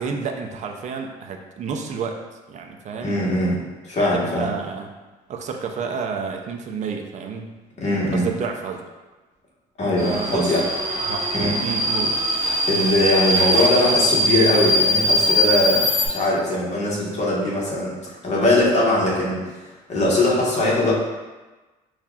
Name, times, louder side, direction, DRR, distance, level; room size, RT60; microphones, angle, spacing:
voice 1, 0.0-2.2 2.5-3.2 4.1-5.0 5.3-7.5 8.1-8.8 10.0-10.6 11.1-11.3 11.6-12.2, right 5 dB, 45° right, 3 dB, 0.5 m, -30 dB
voice 2, 3.0-3.6 3.8-4.5 7.8-8.3 9.8-10.6 11.3-11.5 12.7-20.9, left 1 dB, 40° left, -5 dB, 1.2 m, -21 dB
Subway metro underground, 10.0-16.1, equal, 20° right, 1.0 m, -21 dB
5.5 x 2.4 x 2.3 m, 1.2 s
cardioid pair, 110°, 17 cm